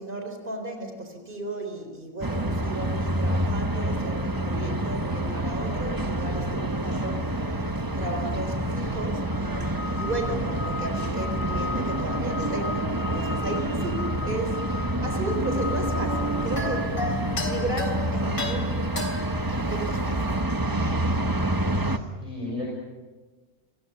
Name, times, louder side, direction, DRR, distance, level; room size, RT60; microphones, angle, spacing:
voice 1, 0.0-17.0 17.4-19.0 19.5-20.4 20.7-21.2, right 2 dB, 35° right, 5 dB, 4.5 m, -35 dB
sound 1, 2.2-22.0, right 1 dB, 15° right, 1.1 m, -27 dB
sound 2, 15.3-20.4, left 3 dB, 70° left, 3.7 m, -35 dB
voice 2, 21.7-22.7, left 2 dB, 20° left, -2 dB, 5.6 m, -35 dB
30.0 x 22.0 x 7.0 m, 1.3 s
omnidirectional pair, 1.5 m